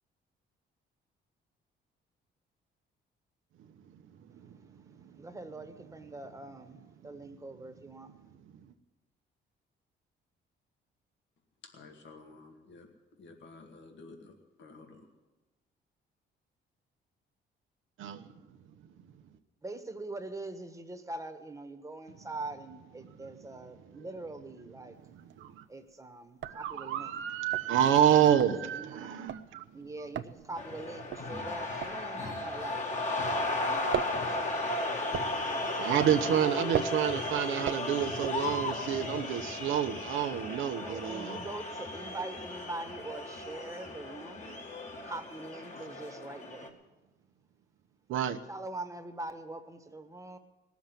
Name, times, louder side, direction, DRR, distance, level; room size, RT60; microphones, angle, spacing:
voice 1, 5.2-6.8 7.0-8.1 19.6-25.0 25.7-27.2 28.6-29.1 29.7-32.8 33.3-34.7 40.8-44.6 45.0-46.8 48.5-50.4, right 2 dB, 15° right, 1.4 m, -43 dB
voice 2, 11.6-12.9 13.2-14.3 14.6-15.0, left 3 dB, 65° left, 2.1 m, -51 dB
voice 3, 18.0-18.3 25.4-25.6 26.4-29.6 35.8-41.4 48.1-48.4, right 10 dB, 85° right, 1.0 m, -28 dB
sound 1, 25.0-25.6 25.9-26.0 26.3-33.3 33.6-38.9, right 11 dB, 65° right, 0.6 m, -39 dB
sound 2, 30.6-46.7, left 2 dB, 35° left, 2.0 m, -35 dB
18.5 x 7.2 x 9.2 m
cardioid pair, 90°, 20 cm